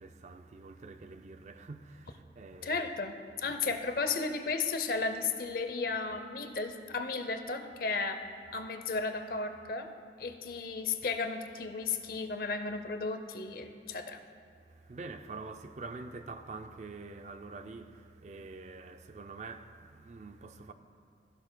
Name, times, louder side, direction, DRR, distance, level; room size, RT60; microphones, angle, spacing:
voice 1, 0.0-2.9 3.7-3.8 14.7-20.7, right 3 dB, 40° right, 0.4 m, -46 dB
voice 2, 2.6-8.2 8.5-9.9 10.2-14.2, left 4 dB, 55° left, 0.6 m, -34 dB
14.0 x 12.0 x 2.2 m
head